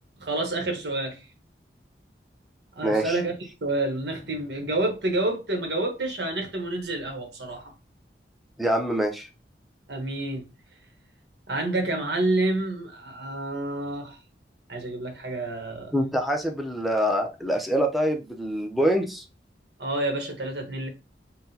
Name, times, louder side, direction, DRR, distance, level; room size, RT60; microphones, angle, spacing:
voice 1, 0.2-1.2 2.7-3.3 3.6-7.7 9.9-10.5 11.5-14.2 14.7-15.9 19.8-20.9, right 2 dB, 70° right, 1.2 m, -28 dB
voice 2, 2.8-3.2 8.6-9.3 15.9-19.2, equal, ahead, 0.6 m, -25 dB
5.7 x 2.2 x 2.8 m
head